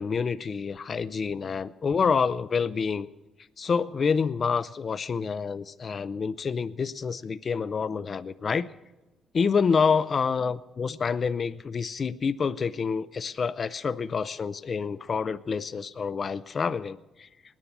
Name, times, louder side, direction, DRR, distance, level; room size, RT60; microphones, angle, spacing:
voice 1, 0.0-3.1 3.6-8.7 9.3-17.3, left 5 dB, 45° left, 14 dB, 0.4 m, -27 dB
19.5 x 9.8 x 7.3 m, 1.1 s
cardioid pair, 90°, 0 cm